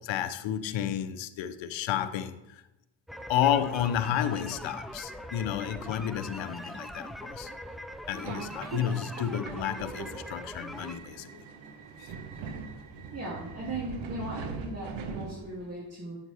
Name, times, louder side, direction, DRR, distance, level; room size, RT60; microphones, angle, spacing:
voice 1, 0.0-2.6 3.3-7.5 8.1-11.4 12.0-12.1, left 10 dB, 70° left, 0.8 m, -31 dB
sound 1, 3.1-11.0, equal, ahead, 0.5 m, -42 dB
Subway metro underground, 8.2-15.7, right 5 dB, 85° right, 1.1 m, -41 dB
voice 2, 13.1-16.2, right 1 dB, 30° right, 2.6 m, -38 dB
9.0 x 7.4 x 3.4 m
cardioid pair, 85°, 46 cm